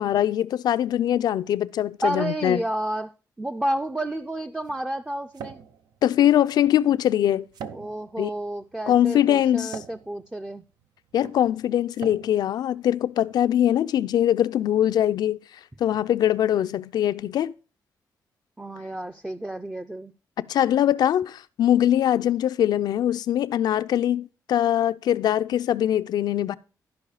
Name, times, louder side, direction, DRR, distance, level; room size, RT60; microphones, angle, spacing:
voice 1, 0.0-2.6 6.0-7.5 8.2-8.3 8.9-9.8 11.1-15.4 15.8-17.5 20.5-26.6, left 11 dB, 80° left, 0.4 m, -22 dB
voice 2, 2.0-3.1 3.4-5.6 7.7-10.6 18.6-20.1, right 1 dB, 10° right, 0.4 m, -30 dB
sound 1, 3.7-13.5, right 7 dB, 90° right, 0.7 m, -45 dB
12.0 x 5.3 x 4.8 m
cardioid pair, 105°, 7 cm